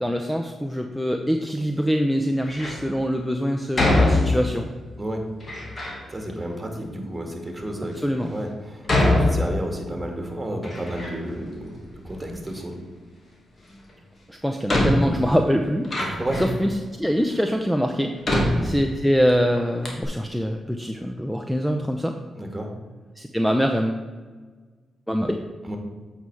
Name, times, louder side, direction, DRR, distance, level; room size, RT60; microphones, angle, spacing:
voice 1, 0.0-4.7 8.0-8.3 14.3-15.9 16.4-18.1 18.6-22.1 23.2-24.1 25.1-25.4, equal, 5° left, 5 dB, 0.7 m, -24 dB
Door, 2.4-2.9 3.7-4.7 5.4-6.0 6.8-6.9 7.6-7.7 8.8-10.0 10.3-11.4 11.7-12.5 13.9-14.0 14.7-16.6 17.3-17.4 18.2-19.3 19.6-19.7 19.8-20.0, left 1 dB, 50° left, 2.3 m, -24 dB
voice 2, 6.1-12.8 16.0-16.4 18.3-18.5 22.4-22.7 25.6-25.8, right 1 dB, 20° right, 2 dB, 2.0 m, -31 dB
8.1 x 5.7 x 4.7 m, 1.4 s
supercardioid pair, 55°, 0 cm